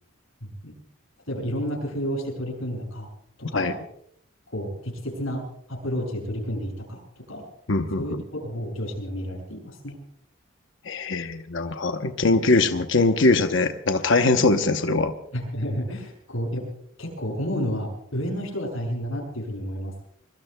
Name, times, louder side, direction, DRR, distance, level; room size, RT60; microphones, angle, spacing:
voice 1, 0.4-0.8 1.3-3.1 3.4-3.8 4.5-7.5 8.0-10.0 15.3-16.6 17.0-19.9, equal, 85° left, 0 dB, 7.1 m, -31 dB
voice 2, 7.7-8.2 10.8-15.1, left 3 dB, 65° left, 7 dB, 0.9 m, -22 dB
24.0 x 22.0 x 2.3 m, 0.70 s
head